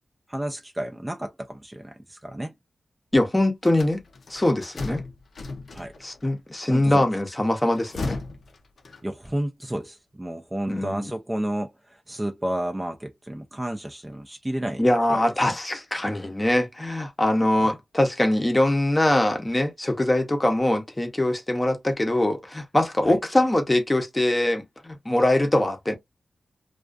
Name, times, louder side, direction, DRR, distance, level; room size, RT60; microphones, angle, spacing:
voice 1, 0.3-2.6 4.9-5.0 5.7-5.9 6.7-7.1 9.0-14.8 15.1-15.3 17.6-17.7 23.0-23.2, right 1 dB, 15° right, 0.4 m, -31 dB
voice 2, 3.1-4.0 4.3-5.0 6.0-8.2 10.7-11.1 14.8-25.9, left 1 dB, 20° left, 0.7 m, -23 dB
sound 1, 3.7-6.2 7.5-9.3, left 3 dB, 70° left, 0.5 m, -36 dB
2.4 x 2.3 x 2.3 m
wide cardioid pair, 85°, 0 cm